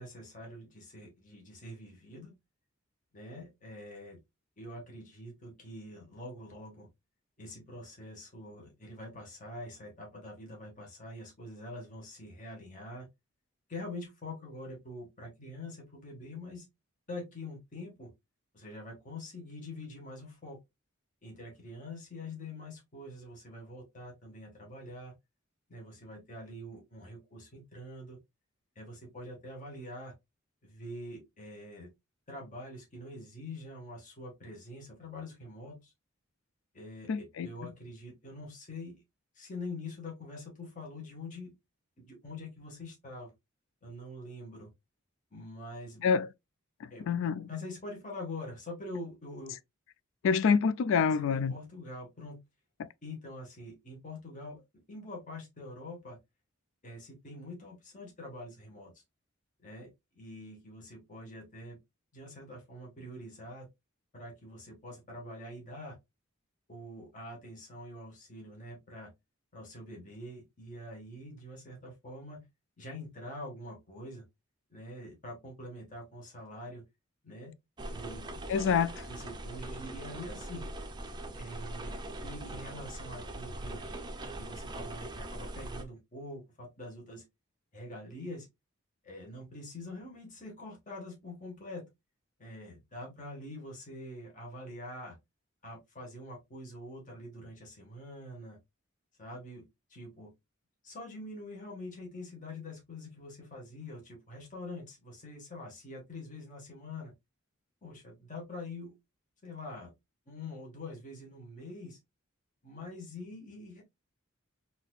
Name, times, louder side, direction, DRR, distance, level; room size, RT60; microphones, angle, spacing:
voice 1, 0.0-2.3 3.1-4.2 4.6-6.9 7.4-13.1 13.7-16.6 17.1-18.1 18.5-20.6 21.2-25.1 25.7-28.2 28.7-30.1 30.6-31.9 32.3-35.9 36.7-39.0 39.3-41.5 42.0-43.3 43.8-44.7 45.3-46.0 46.9-47.1 47.5-49.5 51.0-52.4 53.0-54.6 54.9-56.2 56.8-58.9 59.6-59.9 60.1-61.8 62.1-63.7 64.1-66.0 66.7-69.1 69.5-72.5 72.8-74.2 74.7-76.8 77.2-77.5 77.9-78.4 79.1-80.7 81.4-83.8 84.4-87.2 87.7-88.5 89.0-91.9 92.4-95.2 95.6-98.6 99.2-100.3 100.8-107.1 107.8-108.9 109.4-109.9 110.3-112.0 112.6-113.8, left 1 dB, 40° left, 1.4 m, -45 dB
voice 2, 37.1-37.5 46.0-46.3 47.1-47.5 50.2-51.5 78.5-78.9, left 6 dB, 65° left, 0.3 m, -26 dB
sound 1, 77.8-85.8, right 1 dB, 20° right, 0.5 m, -41 dB
4.2 x 2.8 x 2.3 m
head